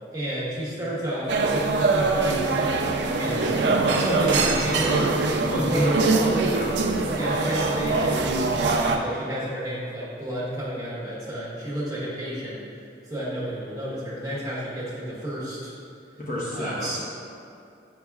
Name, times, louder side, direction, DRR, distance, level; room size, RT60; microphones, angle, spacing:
voice 1, 0.1-2.6 3.0-6.7 7.2-12.6 13.1-15.7 16.5-17.0, right 1 dB, 20° right, -8 dB, 1.2 m, -31 dB
sound 1, 1.3-9.0, right 3 dB, 80° right, 0.5 m, -23 dB
voice 2, 5.5-6.8 16.2-17.0, equal, 45° left, -5 dB, 1.0 m, -28 dB
7.6 x 5.6 x 2.3 m, 2.5 s
head